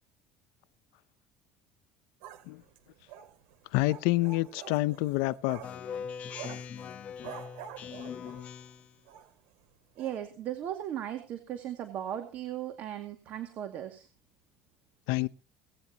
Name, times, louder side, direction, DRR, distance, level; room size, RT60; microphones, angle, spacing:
sound 1, 2.2-8.7 9.1-9.3 9.6-9.7 10.0-10.2, right 10 dB, 80° right, 2.9 m, -47 dB
voice 1, 3.7-5.6 15.1-15.3, left 20 dB, 80° left, 0.6 m, -27 dB
Speech synthesizer, 5.6-8.9, left 7 dB, 40° left, 1.1 m, -41 dB
voice 2, 10.0-14.1, right 11 dB, 50° right, 2.2 m, -37 dB
18.0 x 16.0 x 2.9 m
cardioid pair, 140°, 4 cm